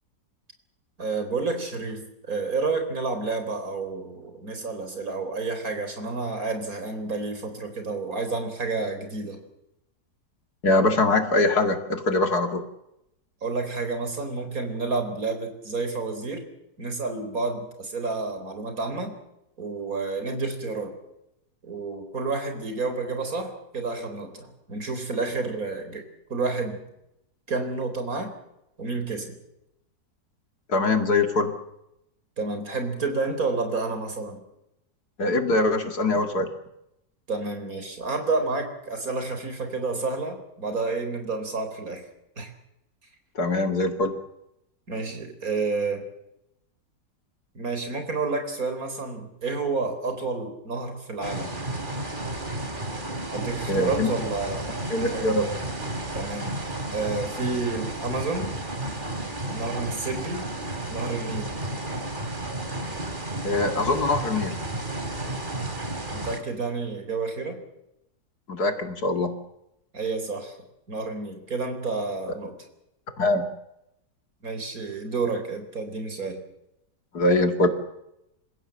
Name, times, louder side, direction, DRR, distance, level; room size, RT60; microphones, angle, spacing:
voice 1, 1.0-9.4 13.4-16.4 16.8-19.2 19.6-21.0 21.6-26.0 26.3-26.8 27.5-28.3 28.8-29.4 32.4-34.4 37.3-42.1 42.4-42.5 44.9-46.1 47.5-51.6 53.3-55.5 56.1-56.6 56.9-58.5 59.5-60.5 60.9-61.6 66.1-67.6 69.9-70.6 70.9-72.6 74.4-76.4, right 3 dB, 55° right, 7 dB, 4.5 m, -30 dB
voice 2, 10.6-12.7 30.7-31.6 35.2-36.5 43.4-44.2 53.7-54.1 54.9-55.5 63.4-64.6 68.5-69.4 73.2-73.5 77.1-77.7, left 2 dB, 65° left, 6 dB, 2.7 m, -23 dB
sound 1, 51.2-66.4, right 2 dB, 30° right, 3.0 m, -32 dB
28.0 x 16.0 x 7.7 m, 0.85 s
omnidirectional pair, 1.8 m